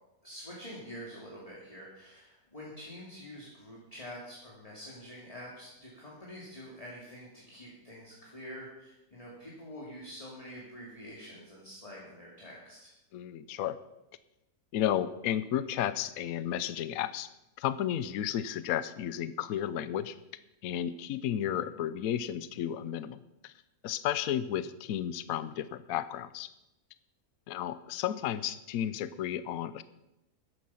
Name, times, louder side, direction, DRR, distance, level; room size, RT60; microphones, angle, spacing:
voice 1, 0.2-12.9, equal, 25° left, -5 dB, 2.8 m, -46 dB
voice 2, 13.1-13.8 14.7-17.3 17.6-20.2 20.6-23.5 23.8-26.5 27.5-29.8, left 10 dB, 75° left, 14 dB, 1.1 m, -33 dB
14.0 x 10.5 x 5.7 m, 0.93 s
omnidirectional pair, 1.6 m